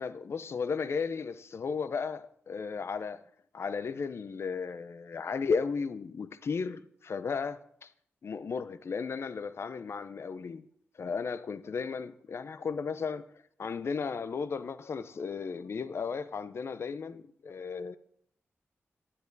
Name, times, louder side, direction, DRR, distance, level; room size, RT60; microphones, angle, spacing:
voice 1, 0.0-3.2 3.5-7.9 8.2-10.7 11.0-13.3 13.6-18.0, left 5 dB, 60° left, 0.6 m, -35 dB
11.0 x 10.5 x 4.0 m
cardioid pair, 85°, 5 cm